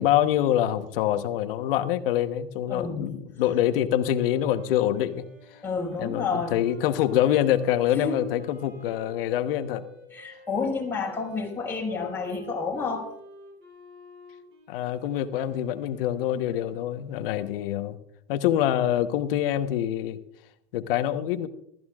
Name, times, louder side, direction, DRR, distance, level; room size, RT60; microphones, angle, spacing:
voice 1, 0.0-5.2 5.5-5.6 6.0-9.8 14.7-18.0 18.3-20.2 20.7-21.5, left 11 dB, 65° left, 9 dB, 1.2 m, -25 dB
voice 2, 2.7-3.1 5.6-6.6 7.9-8.3 10.1-13.1, left 4 dB, 5° left, -4 dB, 5.2 m, -30 dB
Wind instrument woodwind instrument, 4.1-17.5, left 1 dB, 40° right, 7.5 m, -50 dB
29.0 x 14.0 x 2.5 m, 0.74 s
supercardioid pair, 125°, 30 cm